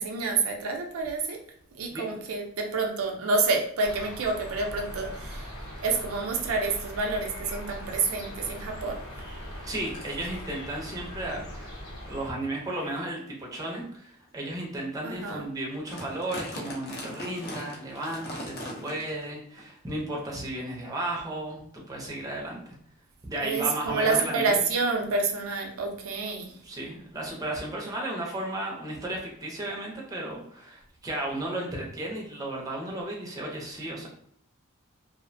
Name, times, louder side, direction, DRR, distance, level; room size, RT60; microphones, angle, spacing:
voice 1, 0.0-1.4 1.8-5.5 5.8-9.4 15.0-15.4 23.4-26.5, right 3 dB, 70° right, 2 dB, 0.4 m, -28 dB
sound 1, 3.8-12.3, equal, 75° left, 0.9 m, -40 dB
Eating Chips, 8.1-8.2 9.2-9.3 9.9-10.4 11.2-11.3 11.9-12.1 12.7-12.8 13.5-13.7 14.3-14.4 14.8-14.9 15.1-15.3 15.6-19.3 19.6-19.7 20.5-20.6, left 1 dB, 50° left, 0.6 m, -40 dB
voice 2, 9.6-11.8 12.1-22.6 23.2-24.6 26.5-34.1, right 1 dB, 15° right, -2 dB, 0.5 m, -34 dB
2.4 x 2.1 x 2.5 m, 0.64 s
head